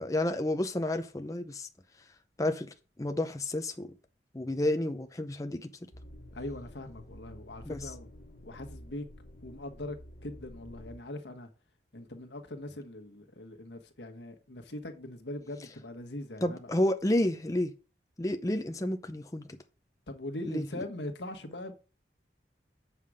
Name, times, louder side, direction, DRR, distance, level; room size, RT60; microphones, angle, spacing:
voice 1, 0.0-1.7 2.4-2.7 3.0-3.9 4.3-5.7 7.7-7.8 16.4-17.7 18.2-19.6 20.5-20.6, left 1 dB, 20° left, 0.6 m, -30 dB
sound 1, 5.9-11.0, equal, 55° left, 1.5 m, -49 dB
voice 2, 6.3-8.1 8.4-9.1 9.4-10.0 10.2-11.5 11.9-16.7 20.1-21.7, left 1 dB, 85° left, 1.4 m, -41 dB
7.5 x 5.7 x 4.9 m
head